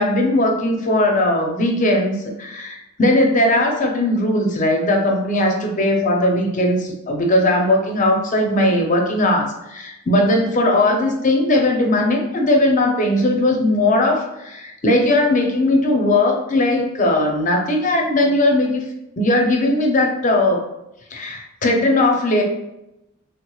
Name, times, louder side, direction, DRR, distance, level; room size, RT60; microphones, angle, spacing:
voice 1, 0.0-18.8 19.2-20.6 21.1-22.4, left 1 dB, 40° left, 2 dB, 0.5 m, -18 dB
3.3 x 3.0 x 2.3 m, 0.88 s
head